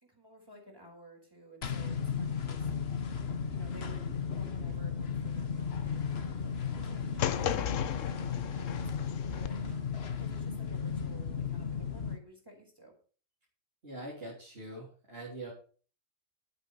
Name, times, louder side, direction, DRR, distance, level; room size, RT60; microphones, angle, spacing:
voice 1, 0.0-2.7 3.5-9.6 10.2-13.0, right 2 dB, 15° right, 0 dB, 4.8 m, -55 dB
sound 1, 1.6-12.2, left 6 dB, 50° left, 1.3 m, -35 dB
sound 2, 3.7-3.8 4.7-4.9 5.8-6.1 7.1-7.3 8.1-8.3 9.7-9.9, left 2 dB, 65° right, 3.0 m, -51 dB
sound 3, 7.2-9.5, left 10 dB, 75° left, 1.1 m, -35 dB
voice 2, 13.8-15.5, right 1 dB, 45° right, -5 dB, 3.8 m, -43 dB
11.5 x 8.9 x 5.5 m, 0.40 s
omnidirectional pair, 1.4 m